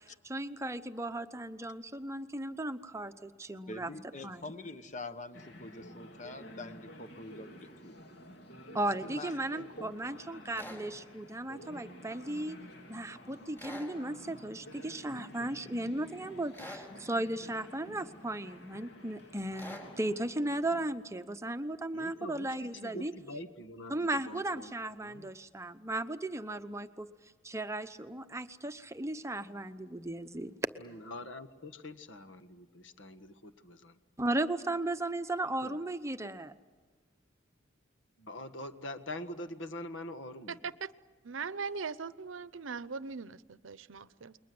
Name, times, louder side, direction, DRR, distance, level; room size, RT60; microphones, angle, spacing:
voice 1, 0.2-3.9 4.2-4.5 8.7-12.6 12.9-23.1 23.9-27.1 27.4-30.5 34.2-36.5, right 1 dB, 15° right, 10 dB, 0.8 m, -36 dB
voice 2, 3.7-7.9 9.0-9.3 9.8-9.9, left 2 dB, 40° left, 10 dB, 1.2 m, -45 dB
sound 1, 5.3-20.9, equal, 55° left, 3.0 m, -51 dB
voice 3, 9.5-9.9 21.9-25.3 30.8-34.0 35.6-35.8 38.2-40.6, left 1 dB, 70° left, 9 dB, 1.6 m, -45 dB
sound 2, 10.5-10.8 13.6-13.9 16.5-16.9 19.6-19.9, left 1 dB, 10° left, 4.6 m, -44 dB
voice 4, 40.5-40.9 41.2-44.4, right 5 dB, 80° right, 16 dB, 0.7 m, -40 dB
29.5 x 22.0 x 7.8 m, 1.4 s
head